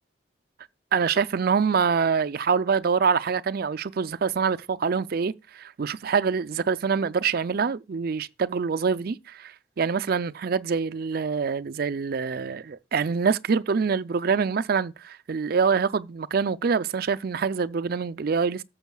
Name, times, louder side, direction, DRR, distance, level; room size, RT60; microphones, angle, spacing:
voice 1, 0.9-18.6, right 5 dB, 50° right, 0.4 m, -25 dB
13.5 x 7.1 x 2.3 m
head